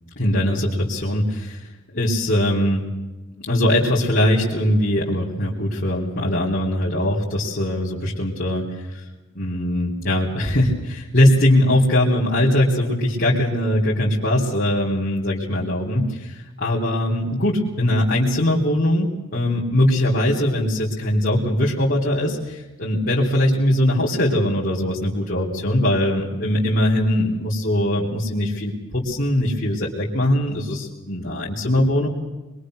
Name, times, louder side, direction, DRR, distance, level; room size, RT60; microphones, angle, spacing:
voice 1, 0.2-1.7 1.9-2.8 3.3-8.6 8.9-9.0 9.4-32.1, left 1 dB, 50° left, -6 dB, 3.7 m, -21 dB
25.5 x 22.5 x 6.5 m, 1.1 s
head